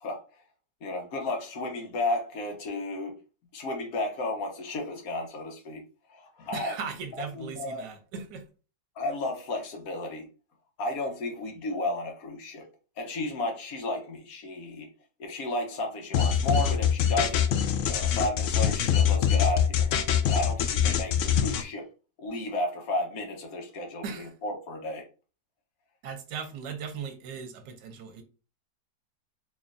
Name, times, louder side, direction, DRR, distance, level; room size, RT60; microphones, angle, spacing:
voice 1, 0.8-3.2 3.5-5.8 6.1-6.8 7.2-7.8 9.0-10.3 10.8-12.7 13.0-14.9 15.2-17.5 17.8-19.9 20.3-21.9 22.2-25.0, left 2 dB, 60° left, 1.2 m, -33 dB
voice 2, 6.5-8.4 24.0-24.3 26.0-28.2, right 6 dB, 85° right, 1.4 m, -38 dB
sound 1, 16.1-21.6, left 8 dB, 80° left, 0.7 m, -24 dB
4.2 x 3.0 x 2.5 m
omnidirectional pair, 1.9 m